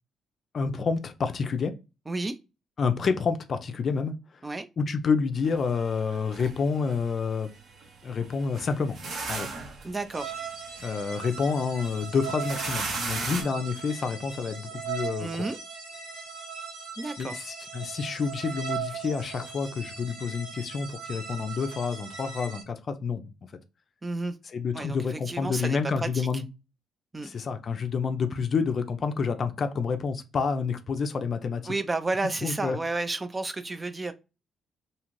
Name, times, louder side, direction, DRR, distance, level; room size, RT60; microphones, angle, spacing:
voice 1, 0.5-1.7 2.8-4.2 4.8-7.5 8.0-9.0 9.3-9.5 10.8-15.3 17.2-23.3 24.5-26.4 27.2-31.7 32.4-32.8, left 5 dB, 50° left, 0.4 m, -28 dB
sound 1, 5.4-13.4, right 3 dB, 60° right, 0.8 m, -38 dB
voice 2, 9.8-10.3 15.2-15.6 17.0-17.4 24.0-24.3 24.7-26.3 27.1-27.3 31.7-34.1, right 2 dB, 25° right, 0.4 m, -31 dB
sound 2, 10.1-22.6, right 6 dB, 85° right, 0.8 m, -39 dB
2.7 x 2.4 x 3.0 m
hypercardioid pair, 45°, 0 cm